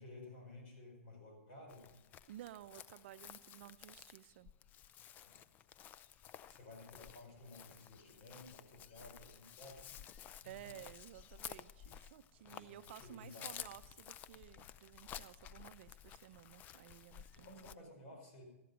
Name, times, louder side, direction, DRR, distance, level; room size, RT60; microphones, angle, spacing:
voice 1, 0.0-1.9 5.2-5.3 6.5-10.1 10.4-10.7 12.5-13.5 17.3-18.4, left 2 dB, 50° left, 2 dB, 4.9 m, -55 dB
Chirp tweet, 1.7-17.8, left 10 dB, 25° left, 0.4 m, -54 dB
voice 2, 2.3-4.5 10.4-17.5, right 13 dB, 50° right, 13 dB, 0.6 m, -55 dB
13.5 x 11.0 x 5.2 m, 1.0 s
hypercardioid pair, 140°, 8 cm